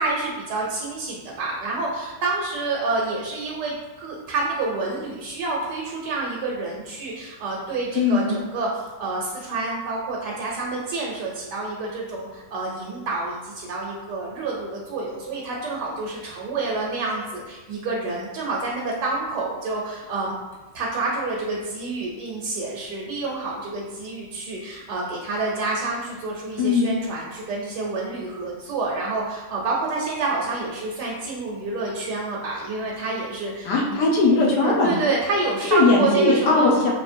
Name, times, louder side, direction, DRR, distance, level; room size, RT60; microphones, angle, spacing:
voice 1, 0.0-20.3 20.7-34.0 34.6-36.7, right 3 dB, 75° right, -3 dB, 1.2 m, -28 dB
voice 2, 7.9-8.3 26.6-26.9 33.6-34.9 35.7-36.9, left 3 dB, 70° left, -2 dB, 1.3 m, -19 dB
4.2 x 3.1 x 2.6 m, 1.2 s
omnidirectional pair, 1.9 m